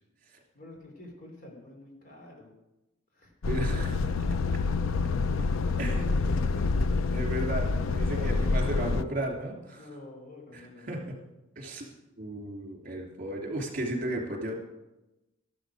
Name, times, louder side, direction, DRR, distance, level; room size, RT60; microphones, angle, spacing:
voice 1, 0.5-2.5 3.1-3.3 5.4-7.3 8.1-9.1 9.8-11.1 13.4-13.6, left 1 dB, 45° left, 1 dB, 3.3 m, -47 dB
Truck, 3.4-9.0, left 4 dB, 90° left, 0.5 m, -27 dB
voice 2, 3.5-4.1 5.8-6.0 7.1-9.8 10.5-10.6 10.9-11.0 11.6-11.9 12.2-14.5, right 1 dB, 40° right, 1 dB, 3.0 m, -34 dB
13.0 x 11.5 x 5.0 m, 0.99 s
head